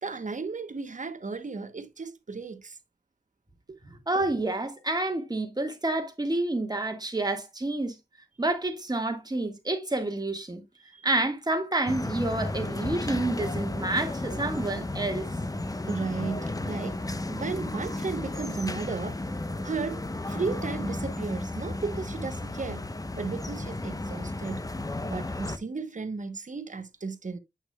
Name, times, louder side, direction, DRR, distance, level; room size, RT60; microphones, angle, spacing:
voice 1, 0.0-2.8 3.7-3.8 10.9-11.1 14.3-14.4 15.9-19.2 19.6-22.9 23.2-24.6 25.1-27.4, right 4 dB, 45° right, 0.9 m, -35 dB
voice 2, 4.1-8.0 8.4-10.6 11.0-15.3, right 2 dB, 25° right, 1.6 m, -29 dB
sound 1, 11.9-25.6, left 2 dB, 20° left, 0.7 m, -33 dB
8.2 x 6.0 x 2.2 m
wide cardioid pair, 75°, 17 cm